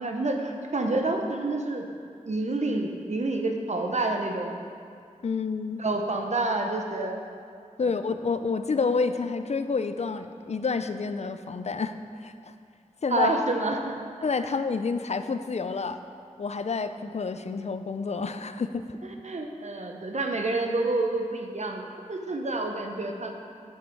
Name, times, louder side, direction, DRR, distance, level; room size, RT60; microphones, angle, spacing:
voice 1, 0.0-1.8 2.3-4.5 5.8-7.2 7.8-7.9 13.1-13.9 19.2-21.8 22.1-23.3, right 2 dB, 60° right, 3 dB, 0.8 m, -28 dB
voice 2, 5.2-5.8 7.8-12.5 13.0-13.3 14.2-16.0 16.4-18.8, left 4 dB, 55° left, 10 dB, 0.4 m, -29 dB
8.2 x 6.5 x 4.6 m, 2.3 s
wide cardioid pair, 70°, 13 cm